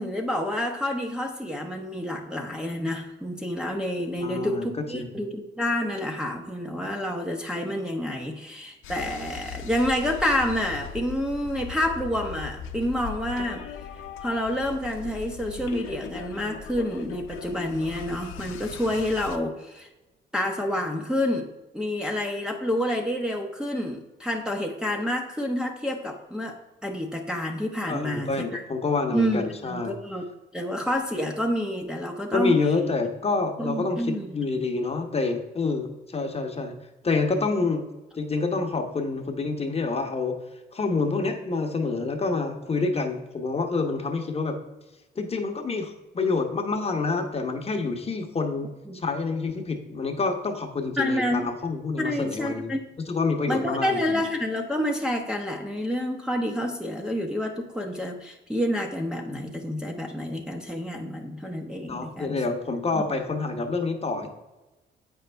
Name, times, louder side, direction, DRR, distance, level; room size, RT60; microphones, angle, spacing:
voice 1, 0.0-13.6 14.2-19.9 20.3-21.5 21.7-28.6 29.1-29.4 29.7-30.2 30.5-32.6 33.6-34.3 48.9-49.0 51.0-51.5 52.0-52.8 53.5-62.4 62.9-63.0, left 1 dB, 5° right, -1 dB, 0.9 m, -28 dB
voice 2, 4.2-5.2 27.9-30.0 32.3-36.7 37.0-37.9 38.1-40.3 40.7-44.6 45.1-52.8 53.1-54.2 61.9-64.3, left 3 dB, 30° left, 4 dB, 1.0 m, -27 dB
sound 1, 8.8-19.4, left 7 dB, 90° left, 0.6 m, -39 dB
7.9 x 5.3 x 3.4 m, 1.1 s
cardioid pair, 90°, 20 cm